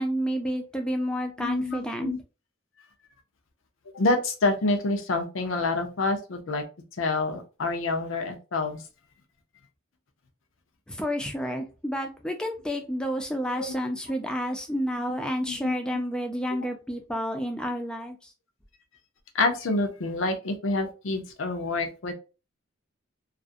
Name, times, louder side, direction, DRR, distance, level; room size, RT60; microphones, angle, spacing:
voice 1, 0.0-2.1 10.9-18.3, equal, 5° left, 0.4 m, -30 dB
voice 2, 1.4-2.2 3.9-6.6 7.0-8.8 13.6-13.7 15.5-15.7 19.3-22.1, left 3 dB, 75° left, 0.6 m, -27 dB
2.4 x 2.1 x 2.5 m
head